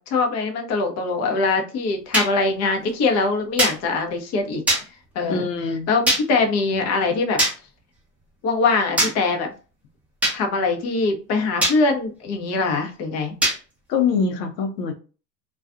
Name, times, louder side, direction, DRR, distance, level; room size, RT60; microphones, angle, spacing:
voice 1, 0.1-4.6 5.1-5.5 5.9-7.4 8.4-9.5 10.3-13.3, left 3 dB, 35° left, 0.7 m, -22 dB
sound 1, 2.1-2.3 3.6-3.8 4.7-4.8 6.1-6.2 7.4-7.5 9.0-9.1 10.2-10.4 11.6-11.8 13.4-13.6, right 1 dB, 5° right, 0.6 m, -19 dB
voice 2, 5.3-5.9 13.9-14.9, left 5 dB, 80° left, 0.7 m, -23 dB
2.3 x 2.3 x 2.4 m
hypercardioid pair, 95°, 49 cm